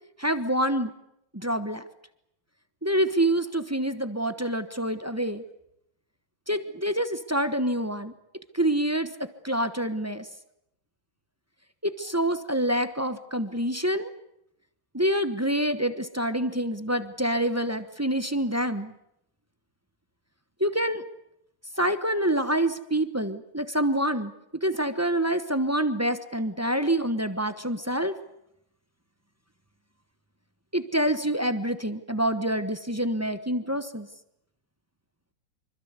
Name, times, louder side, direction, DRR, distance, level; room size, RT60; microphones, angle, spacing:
voice 1, 0.2-0.9 1.3-1.8 2.8-5.4 6.5-8.1 8.5-9.1 9.4-10.2 11.8-14.1 14.9-18.9 20.6-21.0 21.8-24.3 24.6-28.1 30.7-34.1, right 1 dB, 10° right, 9 dB, 0.8 m, -26 dB
25.5 x 24.5 x 8.2 m, 0.80 s
omnidirectional pair, 2.1 m